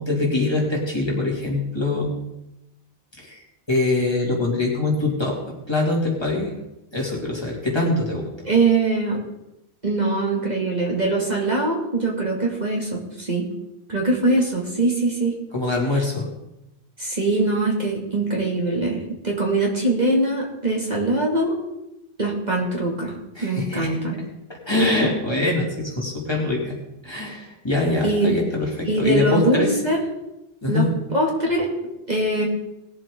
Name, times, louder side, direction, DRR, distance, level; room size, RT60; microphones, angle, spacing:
voice 1, 0.0-2.1 3.2-6.5 6.9-8.3 15.5-16.3 23.4-23.9 24.5-26.8 27.0-29.7 30.6-30.9, left 2 dB, 25° left, -3 dB, 2.6 m, -23 dB
voice 2, 8.4-9.2 9.8-13.4 13.9-15.4 17.0-21.6 22.2-23.1 23.4-24.2 28.0-28.4 28.8-30.0 30.7-30.8 31.1-31.7 32.1-32.5, right 2 dB, 40° right, -2 dB, 2.5 m, -22 dB
19.5 x 7.5 x 3.8 m, 0.91 s
omnidirectional pair, 1.1 m